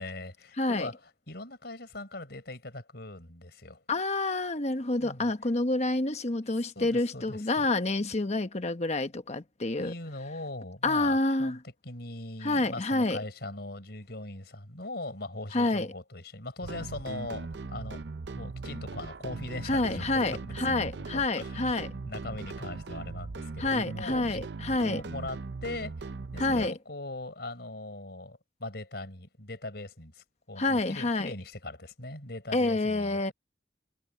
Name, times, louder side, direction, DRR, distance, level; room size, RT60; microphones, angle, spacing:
voice 1, 0.0-3.8 5.0-5.3 6.8-7.7 9.8-18.0 18.3-20.8 21.1-24.4 24.8-26.1 26.3-33.3, left 2 dB, 65° left, 5.8 m, -40 dB
voice 2, 0.6-0.9 3.9-9.9 10.8-11.6 12.4-13.2 15.5-15.9 19.6-21.9 23.6-25.0 26.4-26.7 30.6-31.3 32.5-33.3, left 2 dB, 40° left, 1.2 m, -28 dB
sound 1, 16.6-26.7, right 3 dB, 70° right, 0.6 m, -39 dB
head